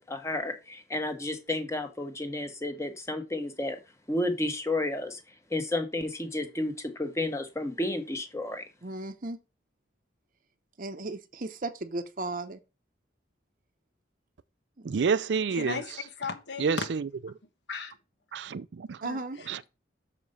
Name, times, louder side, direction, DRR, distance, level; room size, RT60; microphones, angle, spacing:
voice 1, 0.0-3.8 4.1-5.2 5.5-8.6, left 1 dB, 15° left, 1.2 m, -31 dB
voice 2, 8.8-9.4 10.8-12.6 14.8-15.0 19.0-19.4, right 2 dB, 50° right, 0.7 m, -36 dB
voice 3, 14.8-15.8 16.6-17.0 18.3-19.0 19.5-19.6, right 5 dB, 80° right, 0.4 m, -28 dB
voice 4, 15.5-16.9 17.7-18.0 19.0-19.5, left 4 dB, 85° left, 1.2 m, -36 dB
6.6 x 4.9 x 5.4 m
head